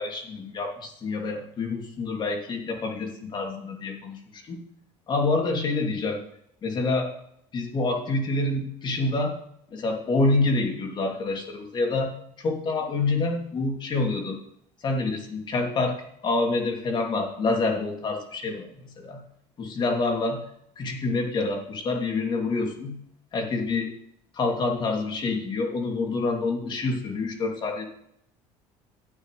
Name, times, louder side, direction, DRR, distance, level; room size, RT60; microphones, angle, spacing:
voice 1, 0.0-4.6 5.1-6.2 6.6-7.1 7.5-9.3 9.7-14.4 14.8-15.9 16.2-19.2 19.6-20.4 20.8-22.9 23.3-23.9 24.3-27.9, left 3 dB, 40° left, 2 dB, 2.7 m, -27 dB
12.0 x 9.1 x 3.2 m, 0.72 s
cardioid pair, 110°, 12 cm